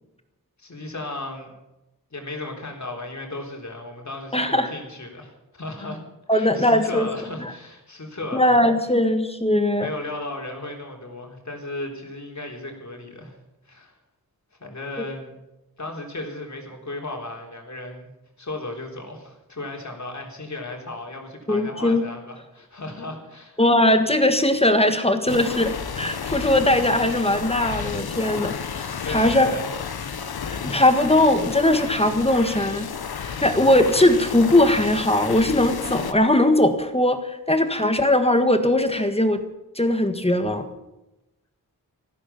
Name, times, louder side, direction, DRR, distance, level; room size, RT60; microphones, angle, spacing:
voice 1, 0.6-1.5 2.1-6.0 6.3-8.6 9.8-13.4 13.7-14.0 14.6-15.3 15.8-18.1 18.4-23.6 29.0-29.7, left 2 dB, 50° left, 1 dB, 3.7 m, -35 dB
voice 2, 4.3-4.7 6.3-7.1 7.4-7.5 8.3-9.9 15.0-15.1 21.5-22.0 23.6-29.5 30.5-32.9 33.4-39.4 39.8-40.6, left 1 dB, 15° left, 7 dB, 1.6 m, -20 dB
sound 1, 25.3-36.1, left 6 dB, 85° left, 1.1 m, -32 dB
14.5 x 13.0 x 7.0 m, 0.95 s
wide cardioid pair, 65°, 37 cm